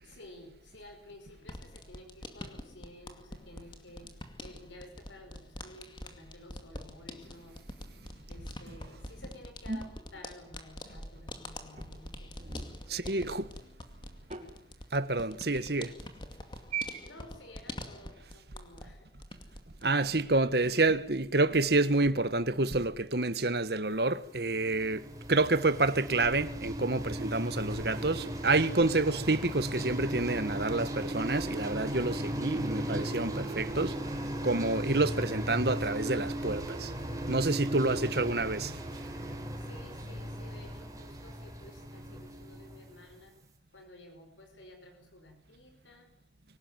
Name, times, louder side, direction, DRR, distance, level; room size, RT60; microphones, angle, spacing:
voice 1, 0.0-4.1 4.4-7.6 8.3-12.3 12.9-13.6 15.2-15.5 17.0-19.1 37.9-38.1 39.6-43.3 43.7-46.1, left 1 dB, 90° left, 5.3 m, -53 dB
sound 1, 1.4-18.9 19.2-19.9, left 1 dB, 25° left, 2.4 m, -46 dB
sound 2, 9.7-10.9 11.8-12.8 14.3-14.5 15.5-15.9 16.7-17.0, right 4 dB, 35° right, 5.1 m, -39 dB
voice 2, 12.9-13.5 14.9-15.9 19.8-34.0 34.4-36.9 37.3-38.8, right 2 dB, 60° right, 1.5 m, -28 dB
sound 3, 24.2-43.2, right 1 dB, 20° right, 3.6 m, -37 dB
24.5 x 19.0 x 9.3 m
head